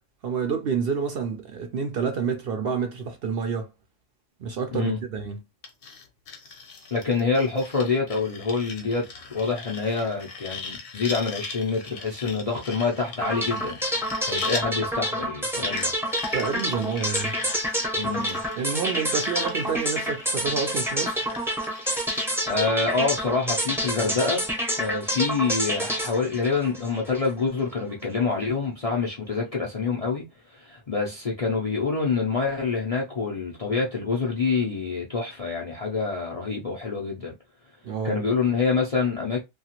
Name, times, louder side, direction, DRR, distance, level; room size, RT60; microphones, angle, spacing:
voice 1, 0.2-3.7 4.4-5.4 16.3-17.3 18.6-21.2 37.8-38.2, right 6 dB, 60° right, 0.6 m, -28 dB
sound 1, 5.6-14.7 15.6-22.3, left 5 dB, 65° left, 0.9 m, -39 dB
voice 2, 6.9-13.8 14.3-15.9 18.0-18.4 22.5-24.5 24.8-30.2 30.5-37.3 38.0-39.4, left 4 dB, 45° left, 0.5 m, -26 dB
sound 2, 13.2-27.3, equal, 5° right, 0.5 m, -28 dB
2.8 x 2.3 x 2.8 m
omnidirectional pair, 1.3 m